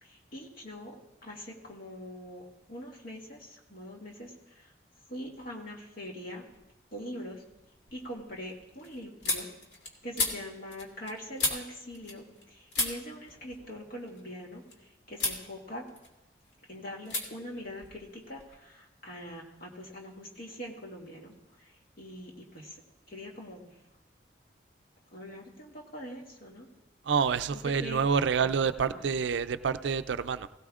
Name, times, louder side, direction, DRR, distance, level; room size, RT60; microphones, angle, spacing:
voice 1, 0.0-4.7 5.1-6.4 6.9-7.4 7.9-9.5 10.0-14.6 15.1-15.8 16.7-21.7 22.0-22.8 23.1-23.7 25.1-26.7 27.5-28.1 28.4-29.1, equal, 50° left, -2 dB, 2.1 m, -43 dB
sound 1, 6.5-7.0 7.4-12.4 12.7-14.7 15.1-15.4 15.8-16.5 17.0-17.2 17.5-18.6, left 3 dB, 75° left, 2.1 m, -35 dB
voice 2, 27.1-30.5, right 6 dB, 80° right, 12 dB, 0.4 m, -28 dB
17.5 x 17.0 x 2.4 m, 0.98 s
head